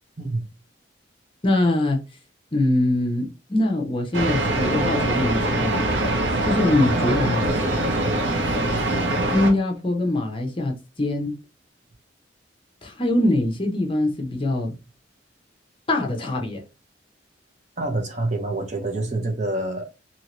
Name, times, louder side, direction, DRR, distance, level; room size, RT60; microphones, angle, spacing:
voice 1, 1.4-2.0 2.5-5.8 6.4-7.5 9.3-11.3 12.8-14.7 15.9-16.6, left 1 dB, 30° left, 0.6 m, -23 dB
sound 1, 4.1-9.5, right 1 dB, 70° right, 0.8 m, -23 dB
voice 2, 17.8-19.9, right 2 dB, 40° right, 0.7 m, -27 dB
2.8 x 2.8 x 2.9 m
head